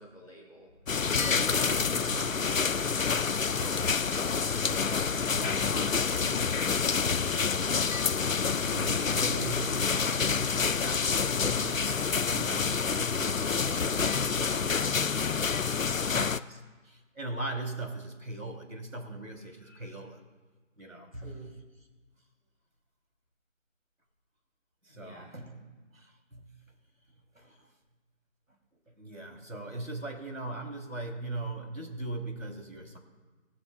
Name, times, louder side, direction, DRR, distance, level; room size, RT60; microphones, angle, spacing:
voice 1, 0.0-1.2 3.6-4.1 21.1-21.6 24.9-25.3, equal, 25° left, -7 dB, 3.7 m, -51 dB
sound 1, 0.9-16.4, left 5 dB, 80° left, 0.6 m, -28 dB
voice 2, 1.2-3.9 4.6-8.0 8.6-11.9 12.2-15.1 15.6-20.2 20.8-21.5 24.8-26.6 27.3-27.7 28.9-33.0, right 2 dB, 90° right, 2 dB, 3.4 m, -41 dB
21.5 x 13.5 x 2.4 m, 1.3 s
figure-of-eight pair, 180°, 39 cm